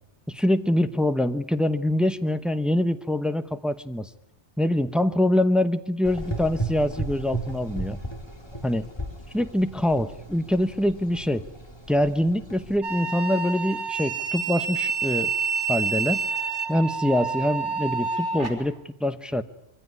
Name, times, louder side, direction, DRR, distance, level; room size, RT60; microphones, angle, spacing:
voice 1, 0.3-4.1 4.6-8.0 8.6-8.9 9.3-11.4 11.9-15.3 15.7-16.2 16.7-19.4, left 1 dB, ahead, 11 dB, 0.7 m, -24 dB
Gurgling / Engine, 6.0-12.8, right 2 dB, 25° left, 2.3 m, -35 dB
sound 1, 12.8-18.5, right 5 dB, 90° right, 4.2 m, -28 dB
23.5 x 15.5 x 9.7 m, 0.87 s
omnidirectional pair, 1.2 m